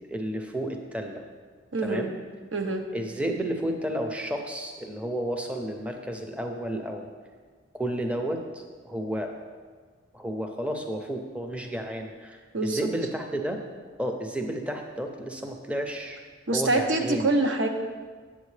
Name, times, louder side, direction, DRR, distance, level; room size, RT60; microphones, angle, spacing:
voice 1, 0.1-1.2 1.8-2.1 2.9-7.1 7.7-9.3 10.1-13.6 14.0-16.2 16.5-17.3, right 1 dB, 5° right, 3 dB, 0.5 m, -32 dB
voice 2, 1.7-2.1 2.5-2.8 12.5-12.8 16.5-17.7, right 2 dB, 85° right, 5 dB, 0.7 m, -25 dB
8.3 x 7.6 x 3.2 m, 1.5 s
head